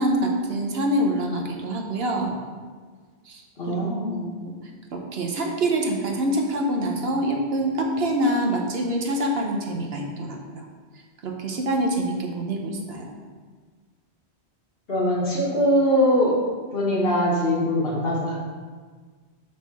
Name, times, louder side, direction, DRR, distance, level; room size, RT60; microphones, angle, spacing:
voice 1, 0.0-2.4 3.3-3.4 4.1-4.5 4.9-10.7 11.2-13.1, right 1 dB, 65° right, 1 dB, 1.1 m, -25 dB
voice 2, 3.6-4.1 12.5-12.7 14.9-16.4 16.7-18.4, equal, 60° left, -5 dB, 1.8 m, -22 dB
6.5 x 3.7 x 6.1 m, 1.5 s
omnidirectional pair, 1.1 m